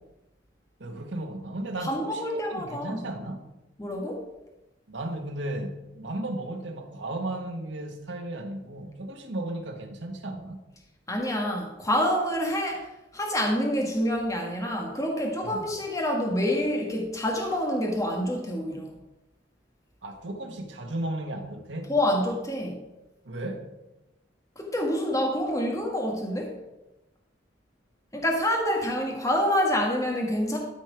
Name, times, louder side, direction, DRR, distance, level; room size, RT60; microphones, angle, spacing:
voice 1, 0.8-3.5 4.9-10.6 15.4-15.7 20.0-21.9 23.2-23.7, right 1 dB, 80° right, 3 dB, 1.2 m, -35 dB
voice 2, 1.8-3.0 3.8-4.3 11.1-12.9 13.1-18.9 21.9-22.8 24.6-26.5 28.1-30.6, equal, 20° left, 0 dB, 1.4 m, -27 dB
12.5 x 4.5 x 5.0 m, 0.97 s
head